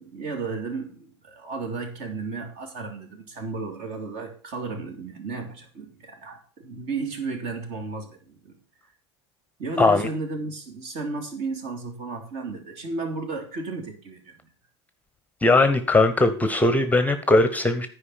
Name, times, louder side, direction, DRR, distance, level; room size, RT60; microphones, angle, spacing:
voice 1, 0.0-8.6 9.6-14.3, right 3 dB, 50° right, 4 dB, 2.6 m, -33 dB
voice 2, 9.8-10.1 15.4-17.9, left 2 dB, 10° left, 10 dB, 0.9 m, -19 dB
9.8 x 5.0 x 7.2 m, 0.42 s
hypercardioid pair, 80°, 15 cm